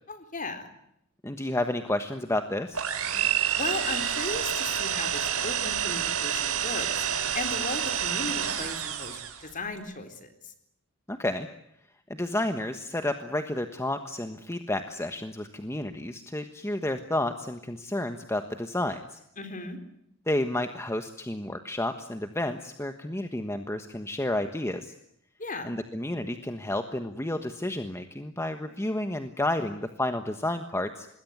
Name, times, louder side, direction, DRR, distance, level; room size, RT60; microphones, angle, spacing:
voice 1, 0.1-0.7 3.3-10.5 19.4-19.8 25.4-25.7, left 2 dB, 40° left, 8 dB, 4.1 m, -37 dB
voice 2, 1.2-2.8 11.1-11.5 12.1-19.2 20.3-24.9 25.6-31.1, left 1 dB, 10° left, 7 dB, 1.3 m, -31 dB
sound 1, 2.7-9.5, right 9 dB, 85° right, 4.2 m, -28 dB
26.0 x 21.0 x 9.6 m, 0.76 s
head